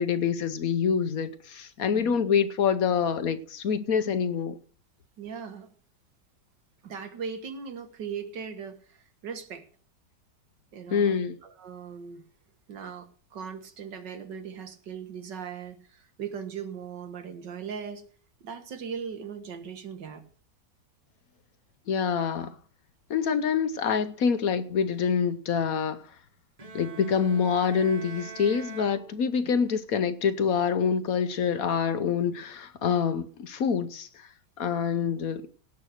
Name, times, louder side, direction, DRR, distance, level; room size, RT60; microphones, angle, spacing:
voice 1, 0.0-4.6 10.9-11.4 21.9-22.5 23.1-26.0 26.7-34.3 34.6-35.4, left 6 dB, 60° left, 1.2 m, -26 dB
voice 2, 5.2-5.7 6.8-9.6 10.7-12.2 12.7-18.0 18.4-20.2 29.4-29.6, right 7 dB, 90° right, 2.1 m, -39 dB
Bowed string instrument, 26.6-29.7, right 5 dB, 25° right, 0.9 m, -45 dB
17.5 x 5.9 x 6.5 m
omnidirectional pair, 1.8 m